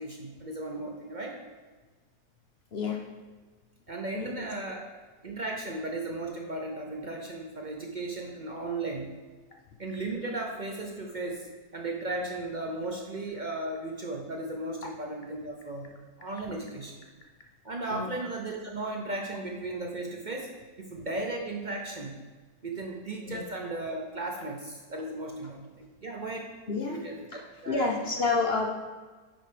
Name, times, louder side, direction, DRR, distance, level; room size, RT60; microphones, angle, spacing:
voice 1, 0.0-1.3 3.9-4.8 5.2-9.1 9.8-15.9 16.2-17.0 17.6-20.5 20.8-22.2 22.6-26.5 26.9-27.2 27.6-27.9, right 2 dB, 60° right, 0 dB, 0.4 m, -36 dB
voice 2, 4.1-4.5 17.9-18.2 23.3-23.4 26.7-27.0 27.7-28.7, left 4 dB, 55° left, 0 dB, 0.7 m, -29 dB
9.0 x 4.0 x 5.0 m, 1.3 s
omnidirectional pair, 1.8 m